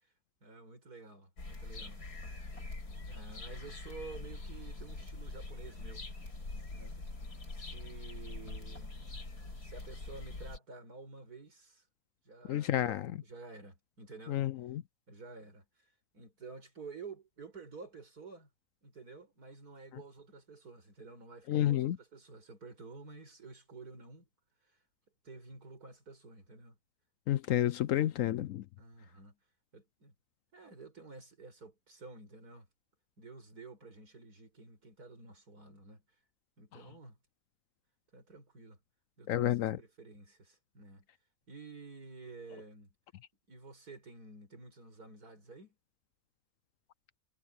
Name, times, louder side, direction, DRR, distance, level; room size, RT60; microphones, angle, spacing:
voice 1, 0.4-2.0 3.0-6.0 6.7-7.0 7.5-9.1 9.6-11.8 12.2-14.4 15.1-18.5 18.8-24.3 24.6-24.8 25.2-26.8 28.8-29.4 29.7-30.1 30.5-32.7 33.2-36.0 36.6-37.2 38.1-38.8 39.2-41.1 41.5-42.9 43.5-45.8, right 3 dB, 80° right, 5.4 m, -51 dB
sound 1, 1.4-10.6, left 2 dB, 90° left, 5.3 m, -44 dB
voice 2, 12.5-13.1 14.3-14.8 21.5-22.0 27.3-28.6 39.3-39.8, left 12 dB, 70° left, 0.8 m, -30 dB
omnidirectional pair, 1.6 m